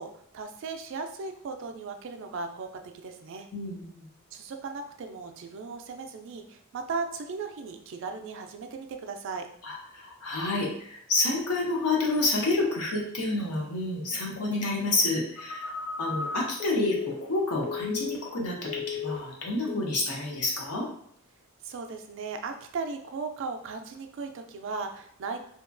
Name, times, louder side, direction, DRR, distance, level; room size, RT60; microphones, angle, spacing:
voice 1, 0.0-3.5 4.3-9.5 21.6-25.4, right 4 dB, 55° right, 5 dB, 0.3 m, -37 dB
voice 2, 3.5-4.1 9.6-15.7 16.0-20.9, left 2 dB, 90° left, -1 dB, 0.8 m, -29 dB
Telephone, 15.4-18.4 18.7-19.3 19.7-20.0, left 6 dB, 40° left, 0.6 m, -35 dB
2.8 x 2.2 x 2.5 m, 0.64 s
head